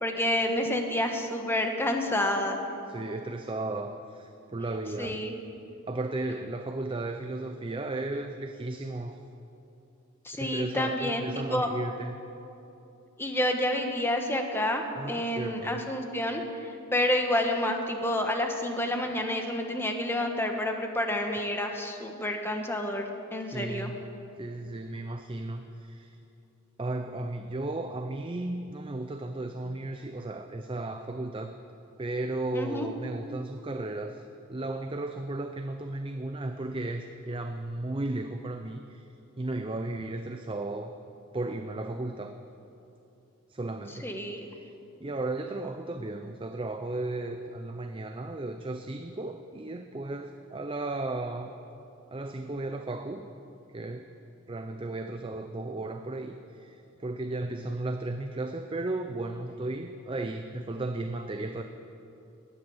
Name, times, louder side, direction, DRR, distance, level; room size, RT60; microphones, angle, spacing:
voice 1, 0.0-2.6 5.0-5.3 10.2-11.7 13.2-23.9 32.5-32.9 44.0-44.5, left 1 dB, 10° left, 4 dB, 1.3 m, -29 dB
voice 2, 2.9-5.2 5.9-9.2 10.3-12.2 15.0-15.8 23.4-24.0 24.4-26.2 26.8-31.5 32.0-34.2 34.5-39.1 39.4-40.9 41.3-42.4 43.5-44.1 44.6-44.7 45.0-51.5 52.1-53.3 53.7-54.1 54.5-61.6, right 2 dB, 25° right, 6 dB, 0.6 m, -35 dB
18.0 x 11.0 x 7.1 m, 2.9 s
head